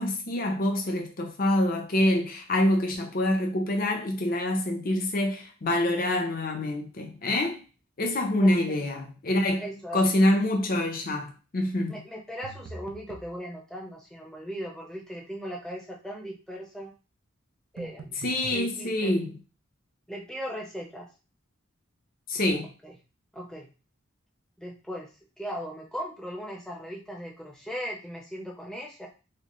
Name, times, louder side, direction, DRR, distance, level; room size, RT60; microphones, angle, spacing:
voice 1, 0.0-7.6 8.0-12.0 18.2-19.4 22.3-22.7, left 1 dB, 45° left, 0.7 m, -26 dB
voice 2, 9.6-10.0 11.9-16.9 17.7-19.1 20.1-21.1 22.8-22.9 23.3-23.7 24.6-25.1 25.4-29.1, equal, 5° left, 0.7 m, -38 dB
sound 1, 12.4-13.3 17.8-18.6, right 3 dB, 85° right, 0.5 m, -43 dB
4.0 x 2.1 x 3.1 m
head